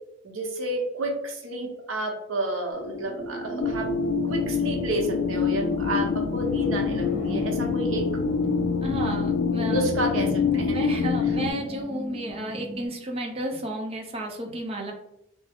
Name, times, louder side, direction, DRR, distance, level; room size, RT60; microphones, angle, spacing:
voice 1, 0.2-4.0 4.2-8.1 9.5-10.8 11.2-11.3, right 2 dB, 80° right, 1 dB, 0.8 m, -30 dB
sound 1, 2.7-12.9, right 1 dB, 35° left, 0.9 m, -35 dB
sound 2, 3.6-11.5, left 6 dB, 65° left, 0.3 m, -26 dB
voice 2, 8.8-9.9 10.7-14.9, right 1 dB, 30° right, 2 dB, 0.5 m, -32 dB
3.5 x 2.0 x 3.4 m, 0.79 s
head